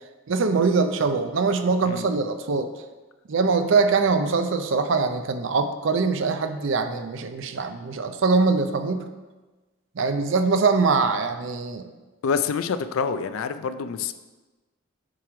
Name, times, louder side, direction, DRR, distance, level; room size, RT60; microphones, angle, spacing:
voice 1, 0.3-2.7 3.3-9.1 10.0-11.9, right 4 dB, 65° right, 8 dB, 0.5 m, -23 dB
voice 2, 12.2-14.1, left 6 dB, 80° left, 11 dB, 0.4 m, -26 dB
7.6 x 3.1 x 4.9 m, 1.2 s
head